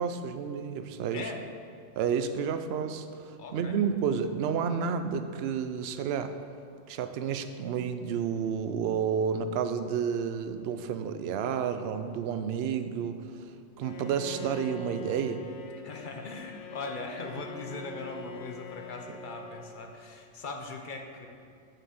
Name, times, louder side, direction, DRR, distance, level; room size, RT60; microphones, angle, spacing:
voice 1, 0.0-1.3 2.0-6.3 6.9-15.5, right 7 dB, 65° right, 9 dB, 0.7 m, -31 dB
voice 2, 3.4-3.8 15.8-21.3, left 3 dB, 45° left, 3 dB, 0.9 m, -40 dB
Bowed string instrument, 13.8-20.1, left 2 dB, 70° left, 0.9 m, -44 dB
7.6 x 5.7 x 6.5 m, 2.4 s
omnidirectional pair, 1.3 m